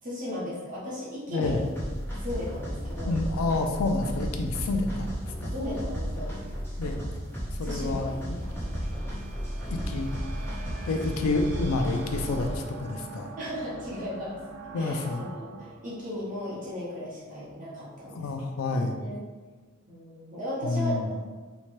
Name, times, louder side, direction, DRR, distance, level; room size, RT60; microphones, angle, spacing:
voice 1, 0.0-1.6 2.2-3.2 5.5-6.3 7.6-8.9 13.4-14.4 14.8-18.3 18.7-19.2 19.9-21.1, left 1 dB, 40° right, -7 dB, 0.9 m, -36 dB
voice 2, 1.3-1.6 3.1-5.1 5.4-5.5 6.8-7.0 7.6-8.1 9.7-10.1 10.9-13.3 14.7-15.2 18.1-19.0 20.6-21.1, left 3 dB, 85° left, 5 dB, 0.3 m, -28 dB
sound 1, 1.4-12.6, equal, 10° left, 0.7 m, -34 dB
sound 2, 7.1-17.4, right 3 dB, 60° right, 0.4 m, -46 dB
2.8 x 2.1 x 3.1 m, 1.4 s
head